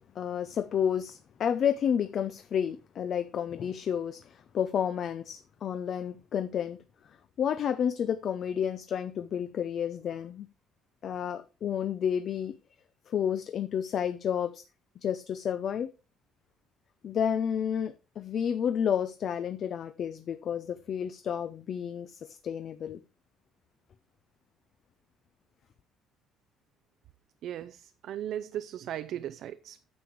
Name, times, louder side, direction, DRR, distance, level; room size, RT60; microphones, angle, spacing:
voice 1, 0.2-6.8 7.4-10.5 11.0-12.5 13.1-14.6 15.0-15.9 17.0-23.0, left 8 dB, 40° left, 0.6 m, -31 dB
voice 2, 27.4-29.8, right 11 dB, 50° right, 0.5 m, -37 dB
9.5 x 7.1 x 4.6 m
cardioid pair, 175°, 0 cm